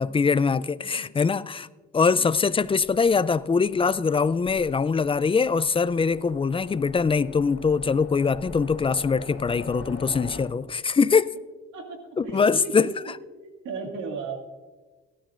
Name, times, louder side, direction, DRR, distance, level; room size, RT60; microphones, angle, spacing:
voice 1, 0.0-1.7 1.9-11.3 12.2-12.9, left 5 dB, 20° left, 0.3 m, -23 dB
voice 2, 0.8-1.2 2.1-2.3 11.7-12.9 13.3-14.4, right 4 dB, 75° right, 2.3 m, -36 dB
Train, 2.2-10.4, left 3 dB, 40° left, 3.4 m, -44 dB
17.5 x 13.0 x 2.5 m
cardioid pair, 90°, 30 cm